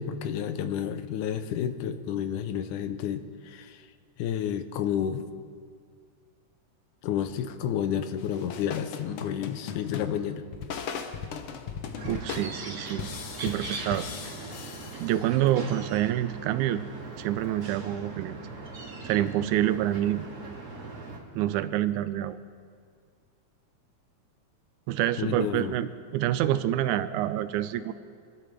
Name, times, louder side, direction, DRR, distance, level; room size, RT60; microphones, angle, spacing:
voice 1, 0.0-3.9 4.2-5.3 7.0-10.5 25.2-25.8, left 9 dB, 90° left, 10 dB, 2.2 m, -30 dB
sound 1, 8.2-15.6, left 6 dB, 70° left, 1.3 m, -38 dB
sound 2, 12.0-21.2, right 3 dB, 40° right, 1.7 m, -40 dB
voice 2, 12.0-13.1 13.4-14.1 15.0-16.8 17.2-18.4 19.0-20.3 21.4-22.4 24.9-27.9, right 13 dB, 80° right, 13 dB, 2.0 m, -27 dB
25.0 x 12.5 x 3.4 m, 2.1 s
omnidirectional pair, 3.5 m